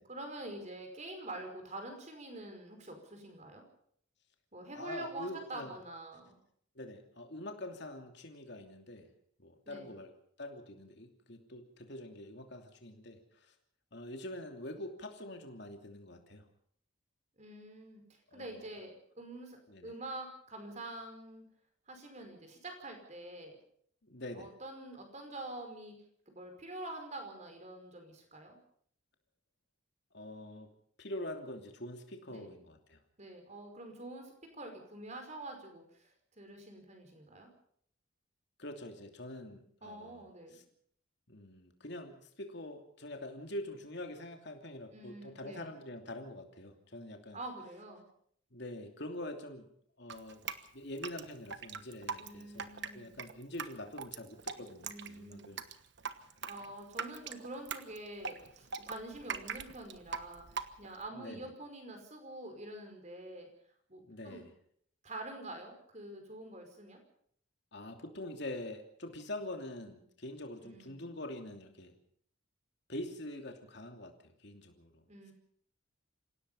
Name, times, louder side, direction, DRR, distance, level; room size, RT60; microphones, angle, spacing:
voice 1, 0.1-3.6 4.5-6.4 9.6-10.0 17.4-21.4 21.9-23.6 24.3-26.0 26.3-28.6 32.3-32.5 33.2-37.5 39.8-40.6 44.9-45.7 47.3-48.0 52.2-53.1 54.5-55.6 56.4-63.5 63.9-64.4 65.0-67.0 70.6-71.1 75.1-75.3, right 2 dB, 35° right, 5 dB, 5.1 m, -46 dB
voice 2, 4.7-5.7 6.7-9.1 9.4-10.1 10.4-13.5 13.9-16.4 18.3-18.7 19.7-19.9 24.0-24.5 30.1-30.7 31.0-33.0 38.6-40.6 41.3-47.4 48.5-49.7 50.0-50.4 50.7-55.6 61.1-61.5 64.0-64.5 67.7-71.9 72.9-75.0, left 1 dB, 55° left, 4 dB, 2.9 m, -45 dB
Drip, 50.1-61.1, right 6 dB, 55° right, 1.2 m, -42 dB
27.0 x 17.0 x 5.6 m, 0.62 s
head